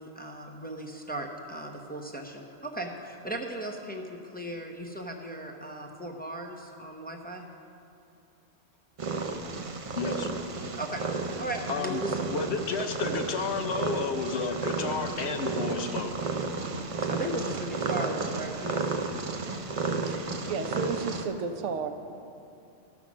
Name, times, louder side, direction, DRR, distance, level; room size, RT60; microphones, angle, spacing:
voice 1, 0.0-7.4 10.8-11.0 11.4-12.2 17.0-18.9, right 1 dB, 10° left, 0 dB, 0.5 m, -37 dB
Purr, 9.0-21.3, right 3 dB, 50° right, 0.4 m, -33 dB
voice 2, 10.0-10.3 11.7-12.0 12.3-16.1, left 4 dB, 65° left, 6 dB, 0.9 m, -31 dB
voice 3, 19.9-21.9, right 5 dB, 75° right, 7 dB, 1.0 m, -33 dB
13.5 x 5.9 x 6.1 m, 2.6 s
omnidirectional pair, 1.3 m